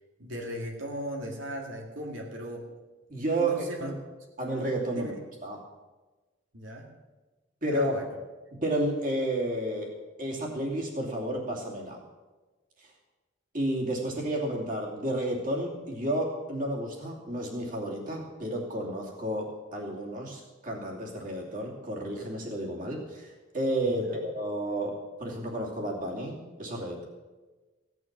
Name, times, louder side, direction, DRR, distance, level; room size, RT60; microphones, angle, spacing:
voice 1, 0.2-2.6 3.3-3.9 4.9-5.2 6.5-6.9 7.7-8.1 23.9-24.2, equal, 90° right, 0 dB, 2.5 m, -37 dB
voice 2, 3.1-3.9 4.4-5.2 5.4-5.6 7.6-8.0 8.6-9.9 10.2-12.0 12.8-12.9 13.5-27.1, right 1 dB, 45° right, -1 dB, 2.7 m, -31 dB
16.5 x 11.0 x 6.0 m, 1.2 s
head